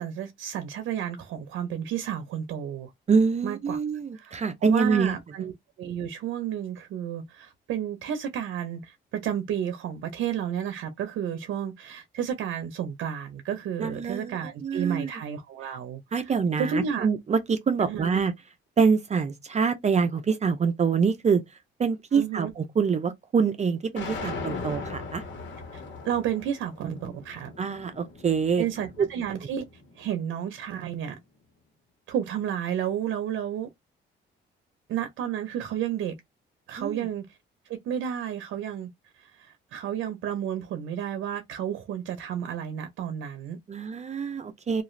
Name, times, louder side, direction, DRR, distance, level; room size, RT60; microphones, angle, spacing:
voice 1, 0.0-2.9 3.4-3.8 4.1-5.5 5.8-17.1 17.8-18.2 22.1-22.5 25.7-27.5 28.6-29.6 30.0-31.2 32.1-33.7 34.9-36.1 36.7-37.3 37.7-38.9 39.2-43.6, right 9 dB, 80° right, 0.6 m, -32 dB
voice 2, 3.1-5.2 13.8-15.1 16.1-18.3 18.8-21.4 21.8-25.2 27.6-28.6 29.0-29.1 36.8-37.1 43.7-44.8, right 5 dB, 35° right, 0.5 m, -25 dB
sound 1, 24.0-30.1, left 4 dB, 70° left, 1.2 m, -39 dB
2.5 x 2.3 x 3.1 m
cardioid pair, 90°, 20 cm